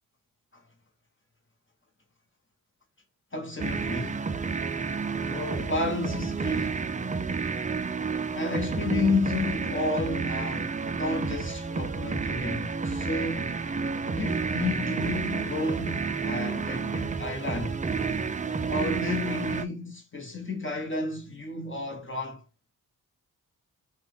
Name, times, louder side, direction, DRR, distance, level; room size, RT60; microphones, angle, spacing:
voice 1, 3.3-4.2 5.3-6.8 8.3-13.7 14.0-17.8 18.7-22.4, left 3 dB, 30° left, 1.3 m, -31 dB
sound 1, 3.6-19.6, right 5 dB, 20° right, 0.4 m, -30 dB
5.6 x 2.4 x 3.6 m
cardioid pair, 60°, 39 cm